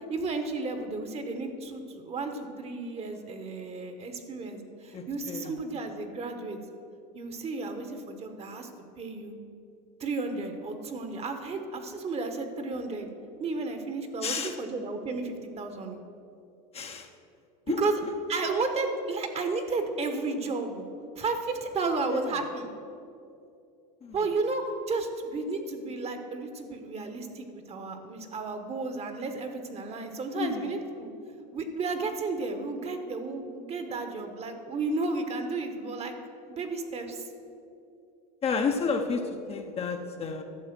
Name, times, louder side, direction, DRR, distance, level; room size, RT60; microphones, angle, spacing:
voice 1, 0.0-6.6 7.1-8.7 9.0-9.3 10.0-13.1 13.4-16.0 17.7-18.0 18.3-20.9 21.2-22.7 24.1-31.1 31.5-36.1 36.5-37.3, right 3 dB, 30° right, 7 dB, 1.2 m, -33 dB
voice 2, 4.9-5.6 14.2-14.6 16.7-17.1 17.7-18.1 22.1-22.4 24.0-24.3 30.3-30.8 38.4-40.4, left 5 dB, 30° left, 4 dB, 0.8 m, -31 dB
12.0 x 7.0 x 6.0 m, 2.6 s
supercardioid pair, 110°, 21 cm